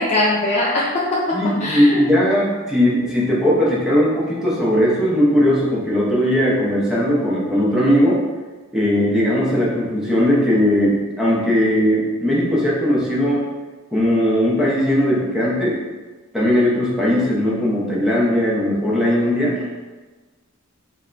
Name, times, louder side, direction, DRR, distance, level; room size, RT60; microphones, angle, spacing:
voice 1, 0.0-2.0, left 1 dB, 30° left, -3 dB, 0.4 m, -21 dB
voice 2, 1.3-8.2 8.7-13.4 13.9-15.8 16.3-19.6, equal, ahead, -6 dB, 0.7 m, -18 dB
3.4 x 2.2 x 3.8 m, 1.3 s
head